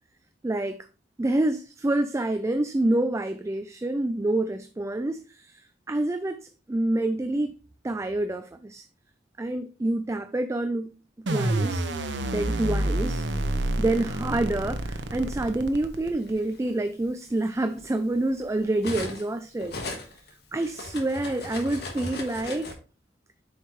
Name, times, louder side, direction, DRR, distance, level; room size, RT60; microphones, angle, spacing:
voice 1, 0.4-0.8 1.2-7.5 7.8-8.8 9.4-10.9 11.2-11.9 12.3-13.2 13.8-19.8 20.5-22.7, right 2 dB, 15° right, 0.3 m, -27 dB
sound 1, 11.3-16.3, right 1 dB, 90° right, 0.9 m, -28 dB
Cutlery silverware, 13.2-14.5 15.5-15.6 16.1-19.3 19.6-22.7, left 2 dB, 65° left, 1.6 m, -39 dB
7.9 x 5.4 x 3.2 m
head